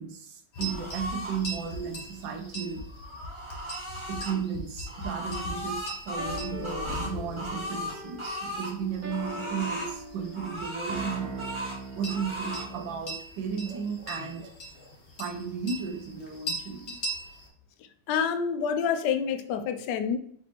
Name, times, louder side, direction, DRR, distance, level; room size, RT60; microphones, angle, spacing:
voice 1, 0.0-2.8 4.1-11.5 11.9-14.5 15.2-17.0, right 6 dB, 75° right, 4 dB, 1.5 m, -34 dB
sound 1, 0.5-17.5, equal, 40° left, 1.0 m, -41 dB
sound 2, 0.6-1.4 2.8-4.4 4.9-8.7 9.1-9.9 10.3-11.8 12.1-12.7, equal, 20° right, 0.9 m, -36 dB
sound 3, 6.2-13.1, right 1 dB, 60° right, 1.0 m, -41 dB
voice 2, 18.1-20.2, left 7 dB, 75° left, 9 dB, 1.1 m, -27 dB
5.2 x 3.3 x 3.0 m, 0.62 s
omnidirectional pair, 2.2 m